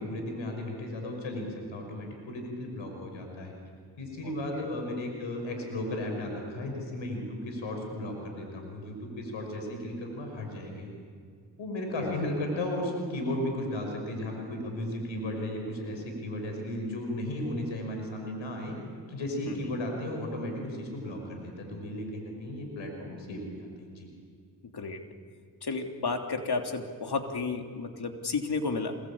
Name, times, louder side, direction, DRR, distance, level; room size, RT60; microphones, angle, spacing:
voice 1, 0.0-3.5 4.0-10.9 11.6-18.8 19.1-24.1, left 1 dB, 80° left, 3 dB, 6.0 m, -35 dB
voice 2, 4.2-4.6 12.0-12.1 19.5-19.7 24.7-25.0 25.6-28.9, left 4 dB, 55° left, 4 dB, 3.2 m, -32 dB
26.5 x 22.5 x 8.8 m, 2.2 s
supercardioid pair, 40°, 46 cm